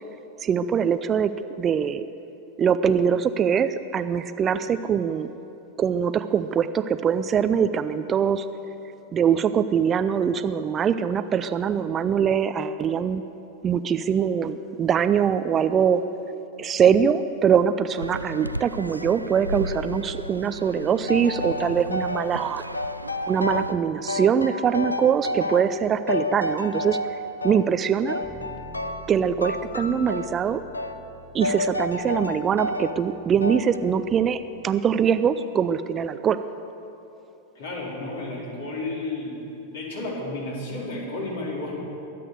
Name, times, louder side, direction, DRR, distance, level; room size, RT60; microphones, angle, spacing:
voice 1, 0.4-1.3 1.6-2.0 2.6-5.3 5.8-8.5 9.1-13.2 13.6-16.0 16.6-22.6 23.3-27.0 27.4-28.2 29.1-30.6 31.3-36.4, right 7 dB, 25° right, 12 dB, 0.5 m, -23 dB
sound 1, 18.0-23.7, equal, 90° right, 0.3 m, -35 dB
sound 2, 21.1-22.3 22.7-23.8 24.1-25.8 26.1-27.7 28.1-29.1 29.4-30.4 30.7-31.0 31.4-33.0 33.4-33.8, left 1 dB, 80° left, 0.8 m, -30 dB
Bass guitar, 28.2-34.5, left 1 dB, ahead, 2.1 m, -48 dB
voice 2, 37.5-39.4 39.7-41.8, left 2 dB, 60° left, -3 dB, 4.0 m, -32 dB
22.5 x 8.5 x 6.8 m, 3.0 s
figure-of-eight pair, 90°, 0 cm